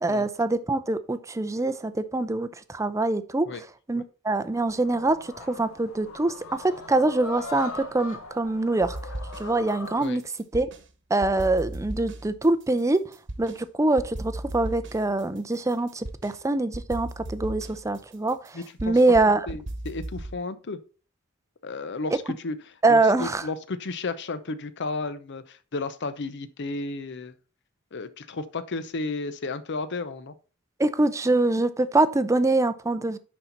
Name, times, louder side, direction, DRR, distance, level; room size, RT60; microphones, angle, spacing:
voice 1, 0.0-3.5 3.9-9.0 9.4-10.2 10.5-10.7 11.1-13.0 13.4-19.5 22.8-23.4 30.8-33.2, right 2 dB, 15° right, 12 dB, 0.5 m, -24 dB
sound 1, 4.5-10.1, left 3 dB, 75° left, 1.4 m, -40 dB
sound 2, 8.8-9.7 10.0-10.9 11.2-13.6 14.0-16.4 16.7-20.4, right 1 dB, 60° right, 1.1 m, -37 dB
voice 2, 18.5-19.0 19.5-20.8 21.6-27.3 27.9-30.3, left 3 dB, 55° left, 13 dB, 0.7 m, -33 dB
10.0 x 4.3 x 4.0 m, 0.37 s
head